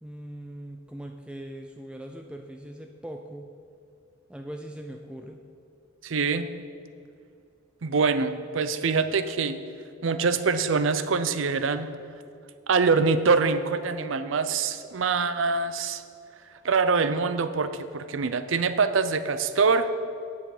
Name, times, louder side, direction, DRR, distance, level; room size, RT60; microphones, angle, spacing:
voice 1, 0.0-3.5 4.3-5.4, right 1 dB, 5° right, 3 dB, 0.4 m, -40 dB
voice 2, 6.0-6.5 7.8-9.6 10.0-11.9 12.7-16.0 16.6-19.9, right 4 dB, 75° right, 11 dB, 0.6 m, -24 dB
9.4 x 7.7 x 4.9 m, 2.5 s
head